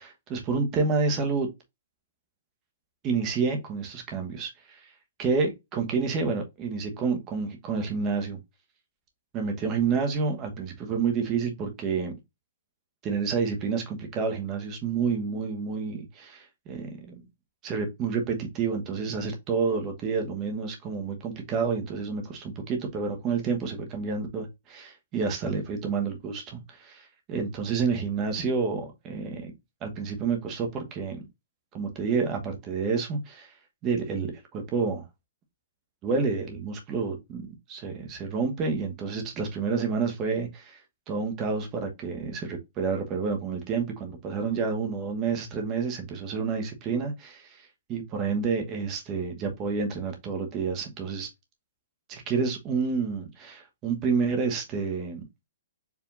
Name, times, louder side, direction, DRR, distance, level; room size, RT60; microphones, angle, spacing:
voice 1, 0.0-1.5 3.0-4.8 5.2-8.4 9.3-12.1 13.0-17.3 17.6-29.5 29.8-31.2 31.7-33.5 33.8-35.1 36.0-40.8 41.1-47.6 47.9-51.3 52.1-55.2, right 5 dB, 25° right, 1.2 m, -29 dB
4.8 x 3.4 x 2.6 m
hypercardioid pair, 145°, 0 cm